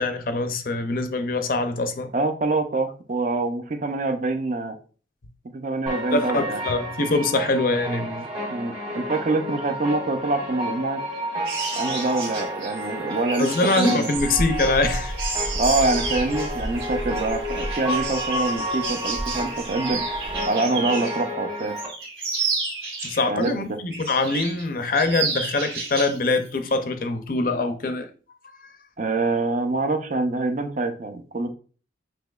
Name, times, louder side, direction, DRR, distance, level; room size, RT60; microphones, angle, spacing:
voice 1, 0.0-2.1 6.1-8.3 13.4-15.1 23.0-28.1 28.6-28.7, left 2 dB, 50° left, 0.5 m, -24 dB
voice 2, 2.1-4.8 5.5-6.6 8.5-11.0 11.8-13.5 13.8-14.1 15.6-20.0 20.5-21.8 23.3-23.5 29.0-31.5, right 2 dB, 45° right, 0.4 m, -25 dB
sound 1, 5.9-21.9, equal, 25° right, 1.2 m, -31 dB
sound 2, 11.4-21.3 21.6-23.5 23.9-24.6 24.9-26.2 26.5-26.7, right 4 dB, 65° right, 1.3 m, -31 dB
sound 3, 14.1-20.5, right 1 dB, 90° right, 1.2 m, -33 dB
5.8 x 2.8 x 2.3 m
head